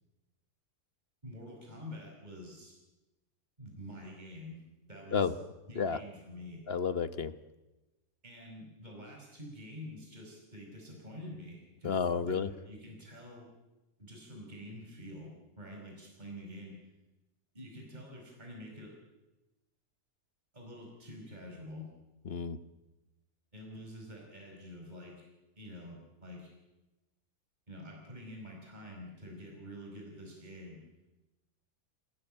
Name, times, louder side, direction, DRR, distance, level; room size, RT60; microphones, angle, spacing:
voice 1, 1.2-2.7 3.6-4.6 4.9-5.4 5.7-6.6 8.2-13.5 14.0-16.8 17.5-18.9 20.5-21.9 23.5-25.2 25.6-26.5 27.7-30.8, left 1 dB, 30° right, -1 dB, 5.3 m, -47 dB
voice 2, 6.7-7.3 11.8-12.5 22.2-22.6, left 6 dB, 45° left, 12 dB, 1.2 m, -31 dB
27.0 x 19.0 x 8.9 m, 1.1 s
omnidirectional pair, 1.6 m